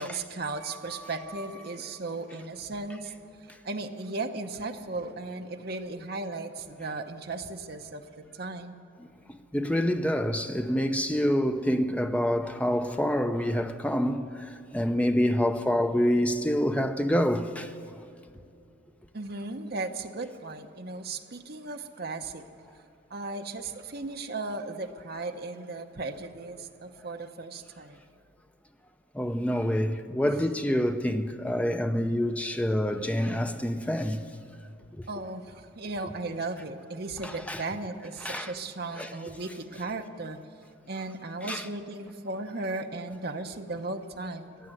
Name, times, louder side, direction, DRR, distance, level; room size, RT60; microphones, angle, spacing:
voice 1, 0.0-3.1 3.6-8.8 19.1-22.5 23.1-28.0 30.2-30.4 32.9-33.0 35.1-40.4 40.9-44.6, right 3 dB, 50° right, 0.8 m, -36 dB
voice 2, 9.3-17.7 29.1-34.2 37.2-37.6 38.2-38.5 38.9-39.1 41.5-41.7, equal, 5° left, 0.5 m, -27 dB
16.0 x 10.5 x 7.8 m
head